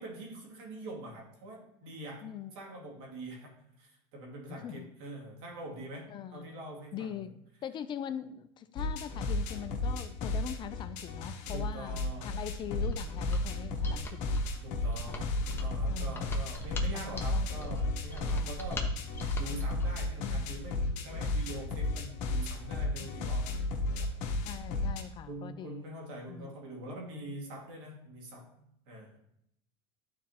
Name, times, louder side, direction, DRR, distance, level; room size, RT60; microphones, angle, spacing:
voice 1, 0.0-2.2 2.5-3.5 3.8-6.1 6.3-7.1 11.5-12.3 14.6-18.9 19.3-23.5 23.8-24.1 25.3-28.5 28.9-29.2, right 1 dB, 80° right, -2 dB, 2.4 m, -44 dB
voice 2, 2.2-2.5 4.5-4.9 6.1-6.5 6.9-7.3 7.6-14.4 15.1-15.4 15.9-16.4 16.9-18.0 18.3-18.5 20.2-20.5 23.0-23.1 24.4-25.9 26.3-26.5, left 9 dB, 35° left, 12 dB, 0.4 m, -42 dB
sound 1, 8.8-25.0, left 2 dB, 65° left, 1.1 m, -33 dB
Mechanisms, 12.8-19.9, right 1 dB, 15° left, 0.9 m, -41 dB
11.5 x 4.1 x 2.9 m, 0.75 s
supercardioid pair, 125°, 14 cm